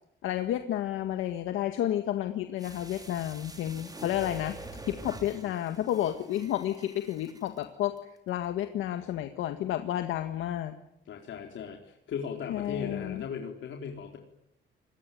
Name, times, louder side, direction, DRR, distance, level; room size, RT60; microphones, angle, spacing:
voice 1, 0.2-4.6 4.9-10.7 12.5-13.2, left 12 dB, 90° left, 7 dB, 1.8 m, -31 dB
sound 1, 2.6-7.6 8.0-8.1, right 2 dB, 20° right, 5.4 m, -46 dB
voice 2, 11.1-14.2, left 7 dB, 70° left, 2 dB, 4.1 m, -37 dB
25.5 x 21.0 x 9.4 m, 0.81 s
cardioid pair, 90°, 20 cm